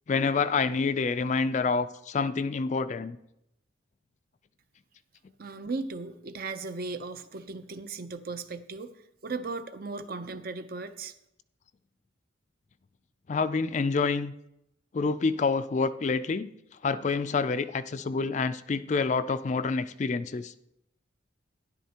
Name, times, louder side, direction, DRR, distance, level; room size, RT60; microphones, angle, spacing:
voice 1, 0.1-3.2 13.3-14.3 14.9-16.5 16.8-20.5, left 4 dB, 35° left, 12 dB, 0.3 m, -27 dB
voice 2, 5.4-8.9 9.2-11.1, right 3 dB, 50° right, 10 dB, 0.6 m, -36 dB
12.5 x 10.5 x 2.9 m, 0.81 s
head